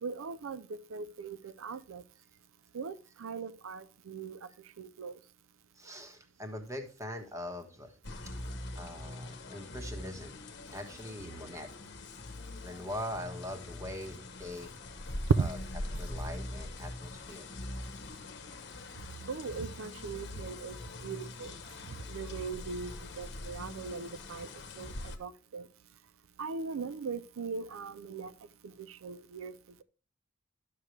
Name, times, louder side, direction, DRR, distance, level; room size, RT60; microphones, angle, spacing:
voice 1, 0.0-2.0 2.7-4.5 4.8-5.2 15.4-15.5 19.3-21.6 21.9-24.5 24.8-25.7 26.4-28.3 28.6-29.6, right 5 dB, 80° right, 0.5 m, -40 dB
voice 2, 5.7-7.9 8.3-8.4 8.7-10.4 10.7-11.7 12.6-14.7 15.4-15.5 16.0-17.5 18.0-18.2, left 1 dB, 15° right, 1.4 m, -42 dB
sound 1, 8.0-25.2, left 1 dB, 55° left, 1.1 m, -43 dB
11.5 x 6.7 x 3.2 m
head